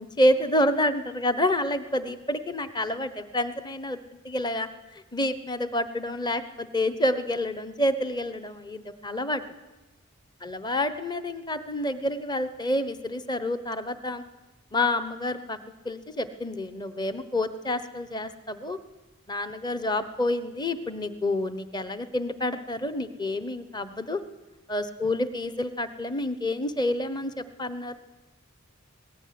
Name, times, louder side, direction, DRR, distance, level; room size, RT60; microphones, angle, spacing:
voice 1, 0.0-4.0 4.2-9.4 10.4-14.2 14.7-15.6 15.8-18.8 19.3-24.2 24.7-28.0, left 1 dB, 20° left, 11 dB, 1.0 m, -28 dB
20.0 x 18.5 x 9.5 m, 1.1 s
head